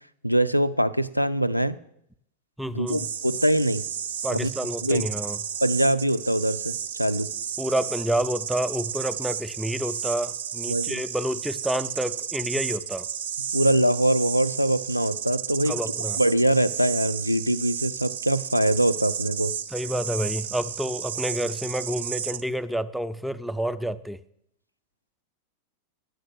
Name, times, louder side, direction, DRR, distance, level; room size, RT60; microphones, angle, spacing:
voice 1, 0.2-1.8 2.7-3.8 4.3-4.5 4.8-5.1 5.6-7.3 10.7-11.0 13.5-15.8 16.2-19.5, right 1 dB, 90° left, 14 dB, 0.4 m, -23 dB
voice 2, 2.6-3.0 4.2-5.4 7.6-13.1 15.7-16.2 19.7-24.2, right 1 dB, ahead, 12 dB, 0.4 m, -29 dB
sound 1, 2.9-22.4, right 8 dB, 60° right, 0.4 m, -33 dB
10.5 x 6.4 x 6.1 m, 0.74 s
figure-of-eight pair, 90°, 0 cm